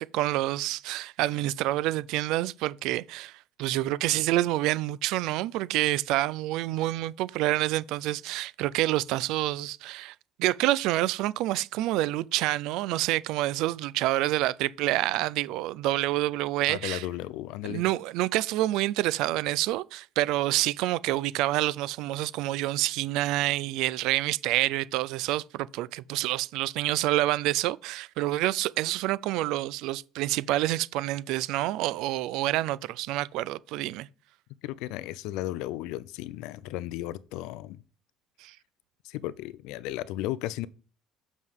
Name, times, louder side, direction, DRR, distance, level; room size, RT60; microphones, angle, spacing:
voice 1, 0.0-3.3 3.6-17.1 17.6-34.1 38.4-38.5, right 16 dB, 65° right, 0.3 m, -27 dB
voice 2, 16.7-17.8 34.6-37.8 39.0-40.7, left 15 dB, 70° left, 0.4 m, -35 dB
7.5 x 6.2 x 3.6 m
cardioid pair, 165°, 0 cm